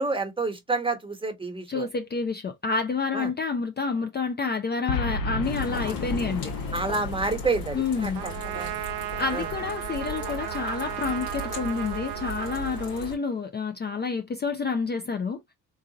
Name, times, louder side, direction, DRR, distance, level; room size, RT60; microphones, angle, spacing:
voice 1, 0.0-1.9 3.1-3.3 5.8-5.9 6.7-8.8 9.3-9.5, right 3 dB, 15° right, 1.3 m, -29 dB
voice 2, 1.7-6.5 7.7-8.2 9.2-15.4, left 4 dB, 25° left, 0.6 m, -29 dB
Boom, 4.9-9.3, left 4 dB, 55° left, 1.1 m, -33 dB
sound 1, 5.4-13.1, left 1 dB, 90° left, 2.5 m, -37 dB
Trumpet, 8.1-13.4, right 14 dB, 70° right, 0.6 m, -35 dB
4.0 x 2.4 x 2.8 m
supercardioid pair, 65°, 39 cm